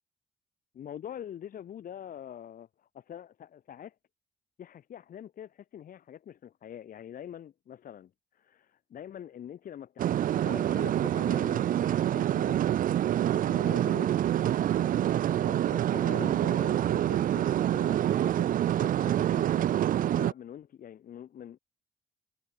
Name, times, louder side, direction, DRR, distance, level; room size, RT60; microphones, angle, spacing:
voice 1, 0.7-4.0 4.6-12.7 13.3-14.1 14.8-15.0 15.3-19.7 20.1-21.6, left 10 dB, 65° left, 3.6 m, -45 dB
sound 1, 10.0-20.3, right 11 dB, 65° right, 0.7 m, -26 dB
hypercardioid pair, 40°, 15 cm